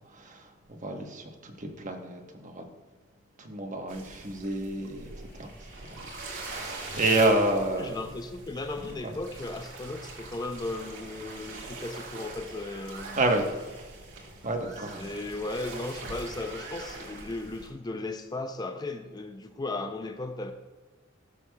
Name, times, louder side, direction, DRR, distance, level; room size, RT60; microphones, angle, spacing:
voice 1, 0.1-0.4 0.7-2.6 3.4-5.0 5.4-5.5 5.9-6.0 6.4-8.0 13.1-13.5 14.4-15.1, right 2 dB, 40° right, 3 dB, 1.0 m, -29 dB
sound 1, 3.7-7.3, left 3 dB, 40° left, 1.4 m, -47 dB
sound 2, 3.9-17.7, right 3 dB, 80° right, 1.9 m, -43 dB
voice 2, 7.8-13.2 14.7-20.5, left 2 dB, 20° left, 7 dB, 0.4 m, -36 dB
12.5 x 6.3 x 2.3 m, 1.3 s
head